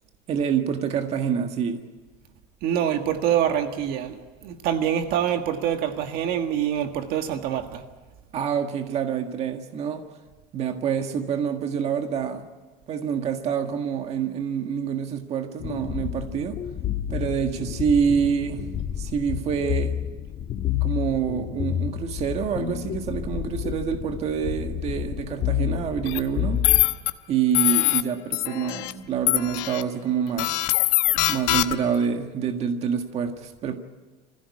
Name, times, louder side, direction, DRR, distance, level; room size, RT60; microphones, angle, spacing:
voice 1, 0.3-1.8 8.3-10.0 10.5-12.5 12.9-16.6 17.1-18.7 19.0-19.9 20.8-26.6 27.3-30.6 31.3-33.8, right 7 dB, 35° right, 5 dB, 1.8 m, -27 dB
voice 2, 2.6-7.8, right 9 dB, 55° right, 6 dB, 1.7 m, -25 dB
sound 1, 15.6-26.9, left 10 dB, 40° left, 1.6 m, -30 dB
sound 2, 26.1-26.2 26.6-27.1 27.5-28.0 28.3-28.9 29.3-29.8 30.4-32.0, left 18 dB, 80° left, 1.0 m, -22 dB
25.0 x 16.0 x 9.7 m, 1.3 s
cardioid pair, 170°, 18 cm